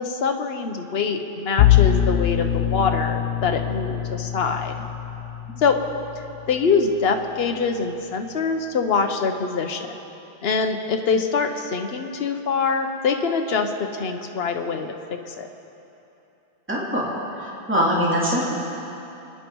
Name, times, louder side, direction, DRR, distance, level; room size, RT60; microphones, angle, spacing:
voice 1, 0.0-4.8 5.6-5.8 6.5-9.9 10.4-15.0 15.2-15.5, left 5 dB, 70° left, 5 dB, 1.2 m, -24 dB
Bowed string instrument, 1.6-6.7, left 11 dB, 90° left, 0.9 m, -23 dB
voice 2, 16.7-17.1 17.4-18.5, equal, 10° right, -5 dB, 2.4 m, -22 dB
25.0 x 10.5 x 4.6 m, 2.9 s
omnidirectional pair, 1.1 m